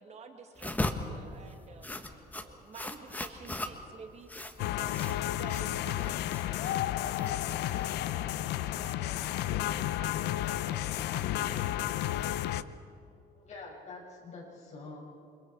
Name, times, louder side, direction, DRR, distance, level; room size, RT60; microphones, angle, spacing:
voice 1, 0.0-11.9, right 4 dB, 40° right, 4 dB, 2.0 m, -51 dB
sound 1, 0.6-8.5, left 2 dB, 10° left, 1.3 m, -39 dB
sound 2, 4.6-12.6, left 13 dB, 80° left, 0.7 m, -32 dB
voice 2, 13.4-15.0, left 3 dB, 45° left, -3 dB, 6.5 m, -46 dB
28.0 x 25.0 x 4.6 m, 2.6 s
cardioid pair, 110°, 17 cm